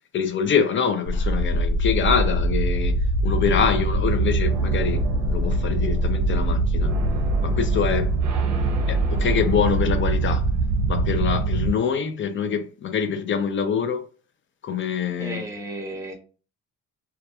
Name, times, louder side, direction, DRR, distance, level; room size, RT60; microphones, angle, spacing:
voice 1, 0.1-2.9 3.2-5.0 5.3-6.9 7.4-8.1 8.9-10.4 10.9-14.0 14.6-15.4, left 7 dB, 40° left, 0.5 m, -25 dB
sound 1, 1.1-11.7, right 2 dB, 60° right, 0.6 m, -23 dB
sound 2, 3.3-11.1, left 2 dB, 25° left, 1.1 m, -42 dB
voice 2, 15.2-16.2, right 1 dB, 10° right, 0.9 m, -33 dB
2.6 x 2.3 x 2.3 m
cardioid pair, 90°, 30 cm